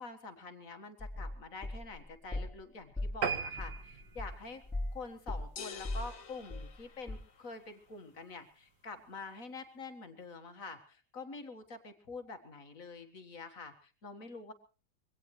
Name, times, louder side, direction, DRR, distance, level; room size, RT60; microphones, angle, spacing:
voice 1, 0.0-4.6 4.9-14.5, left 3 dB, 55° left, 7 dB, 2.0 m, -46 dB
sound 1, 1.0-2.6 3.0-5.0 5.3-6.8 7.1-7.2, left 1 dB, ahead, 5.2 m, -39 dB
sound 2, 3.2-6.0 6.4-6.6 7.1-7.2 7.5-7.6 7.8-7.9, right 7 dB, 80° right, 2.1 m, -38 dB
sound 3, 5.6-7.6, left 7 dB, 80° left, 1.8 m, -48 dB
23.5 x 17.5 x 3.2 m, 0.36 s
omnidirectional pair, 1.8 m